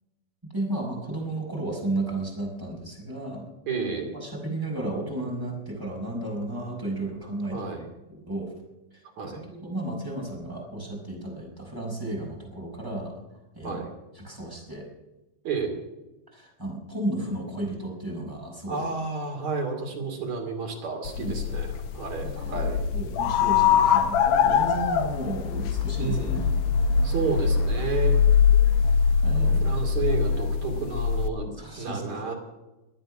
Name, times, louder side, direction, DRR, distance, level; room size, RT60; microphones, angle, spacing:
voice 1, 0.5-3.5 4.1-8.5 8.9-13.1 13.5-13.8 14.1-14.9 16.3-18.8 21.2-21.4 22.2-26.5 29.2-29.6 31.6-32.3, right 1 dB, 5° right, -2 dB, 4.3 m, -33 dB
voice 2, 3.7-4.1 7.5-7.9 9.2-9.4 13.6-13.9 15.4-15.8 18.7-22.8 26.0-26.5 27.0-28.2 29.3-32.3, right 5 dB, 45° right, 2 dB, 3.4 m, -31 dB
sound 1, 21.1-31.3, left 7 dB, 70° left, 2.9 m, -23 dB
23.0 x 8.9 x 6.1 m, 1.0 s
omnidirectional pair, 5.4 m